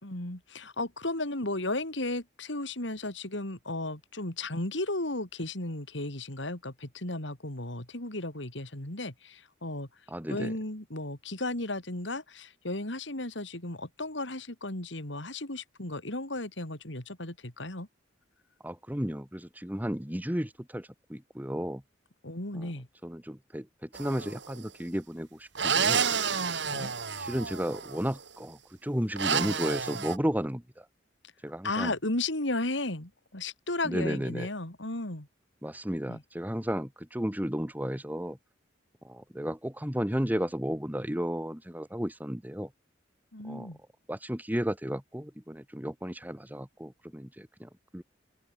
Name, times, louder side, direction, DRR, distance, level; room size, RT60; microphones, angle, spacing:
voice 1, 0.0-9.9 10.3-17.9 22.2-22.9 26.6-26.9 31.6-35.3 36.1-36.2 43.3-43.8, left 2 dB, 75° left, 3.9 m, -34 dB
voice 2, 10.1-10.5 18.6-21.8 22.5-22.7 23.0-26.0 26.7-26.9 27.2-30.8 31.4-31.9 33.8-34.5 35.6-38.4 39.0-42.7 43.5-43.7 44.1-48.0, equal, 10° right, 1.6 m, -33 dB
sound 1, 23.9-24.5 25.5-28.0 29.2-30.2, right 6 dB, 65° right, 2.6 m, -29 dB
open air
head